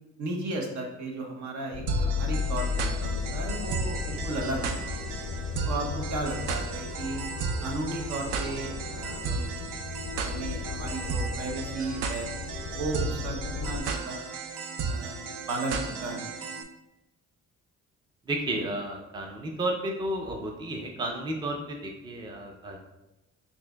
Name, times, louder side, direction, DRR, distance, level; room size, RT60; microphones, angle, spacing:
voice 1, 0.2-5.1 5.7-7.2 7.6-9.7 10.1-12.3 12.7-14.2 14.8-15.2 15.5-16.3, right 2 dB, 65° right, 1 dB, 0.8 m, -35 dB
sound 1, 1.7-13.8, left 5 dB, 45° left, 0.4 m, -37 dB
sound 2, 1.9-16.6, right 2 dB, 85° right, 0.5 m, -33 dB
voice 2, 18.3-22.8, right 1 dB, 15° right, 1 dB, 0.4 m, -32 dB
5.8 x 2.6 x 2.2 m, 1.0 s
cardioid pair, 90°, 30 cm